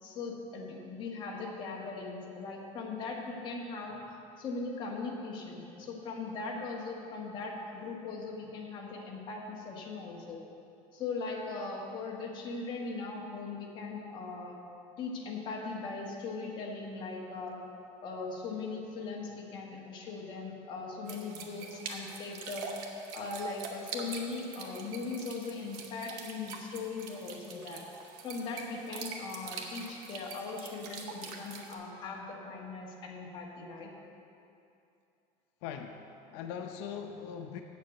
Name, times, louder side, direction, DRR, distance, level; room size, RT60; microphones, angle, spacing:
voice 1, 0.0-3.9 4.4-10.4 10.9-14.6 15.0-17.6 18.0-22.7 23.1-27.8 28.2-33.9, left 4 dB, 35° left, -2 dB, 1.4 m, -39 dB
sound 1, 21.1-31.7, right 4 dB, 70° right, 1.2 m, -44 dB
voice 2, 35.6-37.6, left 7 dB, 85° left, 5 dB, 0.6 m, -41 dB
7.5 x 7.2 x 7.9 m, 2.7 s
cardioid pair, 180°, 14 cm